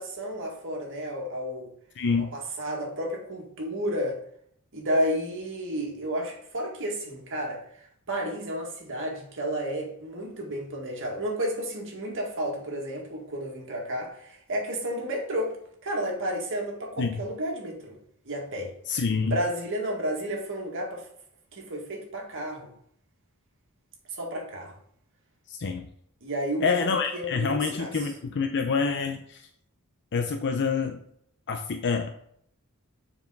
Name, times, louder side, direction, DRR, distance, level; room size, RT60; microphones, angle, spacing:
voice 1, 0.0-1.7 2.3-4.2 4.7-7.6 8.1-15.5 15.8-18.0 18.2-18.7 19.3-21.1 21.5-22.7 24.1-24.8 26.2-28.1, equal, 60° right, -1 dB, 2.0 m, -31 dB
voice 2, 2.0-2.4 17.0-17.2 18.9-19.4 25.5-25.9 26.6-29.5 30.1-31.0 31.5-32.2, left 5 dB, 55° left, 5 dB, 0.6 m, -27 dB
7.4 x 4.9 x 3.9 m, 0.68 s
head